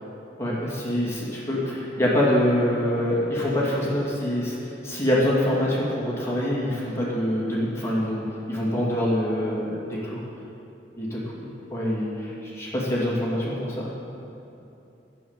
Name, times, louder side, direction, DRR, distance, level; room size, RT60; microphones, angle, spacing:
voice 1, 0.4-10.2 11.0-13.9, left 1 dB, 15° left, -7 dB, 2.7 m, -25 dB
12.0 x 7.3 x 9.0 m, 2.8 s
head